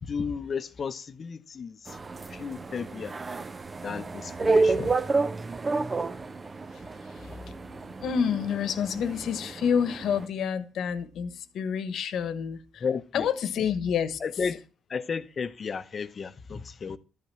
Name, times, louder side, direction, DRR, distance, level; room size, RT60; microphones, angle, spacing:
voice 1, 0.0-2.0 2.3-3.1 3.8-4.9 12.8-13.3 14.2-14.6 14.9-17.0, left 6 dB, 45° left, 0.8 m, -33 dB
sound 1, 1.9-10.3, right 3 dB, 30° right, 0.6 m, -30 dB
voice 2, 7.1-7.5 8.0-12.8 13.1-14.2, left 7 dB, 70° left, 1.2 m, -28 dB
13.0 x 5.5 x 7.5 m
cardioid pair, 90°, 0 cm